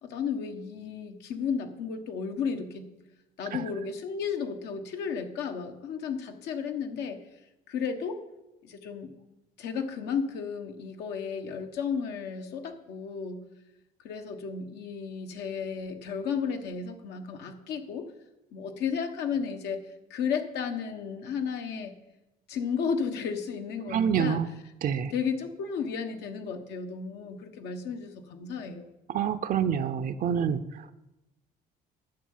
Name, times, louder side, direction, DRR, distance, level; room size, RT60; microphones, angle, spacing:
voice 1, 0.0-2.9 3.4-7.2 7.7-8.2 8.6-9.1 9.6-13.4 14.0-18.1 18.5-19.8 20.1-21.9 22.5-24.4 25.0-28.9, left 6 dB, 80° left, 5 dB, 1.3 m, -33 dB
voice 2, 23.9-24.5 24.8-25.1 29.1-30.9, right 8 dB, 55° right, 11 dB, 0.6 m, -27 dB
10.5 x 6.7 x 7.3 m, 0.97 s
cardioid pair, 110°, 17 cm